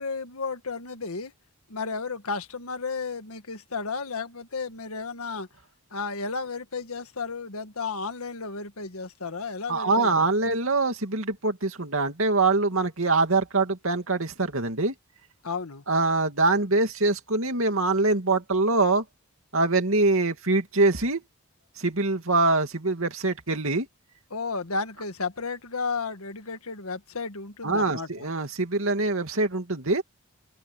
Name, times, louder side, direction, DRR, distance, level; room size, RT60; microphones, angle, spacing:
voice 1, 0.0-1.3 1.7-5.5 5.9-10.5 15.4-15.8 24.3-28.3, left 4 dB, 80° left, 1.7 m, -33 dB
voice 2, 9.7-14.9 15.9-19.0 19.5-21.2 21.8-23.9 27.6-30.0, right 3 dB, 70° right, 2.5 m, -24 dB
open air
head